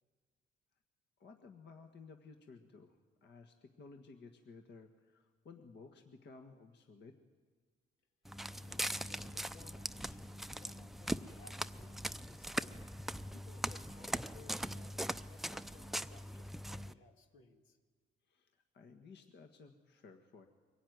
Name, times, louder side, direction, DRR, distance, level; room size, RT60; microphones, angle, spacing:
voice 1, 1.2-7.2 18.3-20.5, left 4 dB, 60° left, 5 dB, 1.6 m, -56 dB
Walk footsteps, 8.3-16.9, equal, ahead, 0.6 m, -41 dB
voice 2, 8.6-12.8 13.3-17.8, left 4 dB, 85° left, 4 dB, 2.4 m, -62 dB
23.5 x 16.0 x 9.4 m, 1.5 s
cardioid pair, 90°, 20 cm